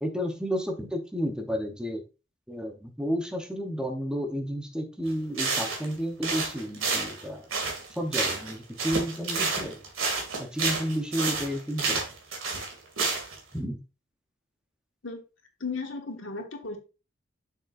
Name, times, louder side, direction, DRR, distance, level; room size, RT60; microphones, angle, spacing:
voice 1, 0.0-2.0 2.5-7.5 8.0-9.8 10.4-12.0 13.5-13.8, equal, 5° right, 4 dB, 0.7 m, -31 dB
sound 1, 5.0-5.1 5.4-5.9 6.2-8.5 8.8-13.4, right 4 dB, 90° right, 2.1 m, -29 dB
voice 2, 15.6-16.8, left 4 dB, 70° left, 3 dB, 1.5 m, -35 dB
6.5 x 6.4 x 2.5 m, 0.30 s
head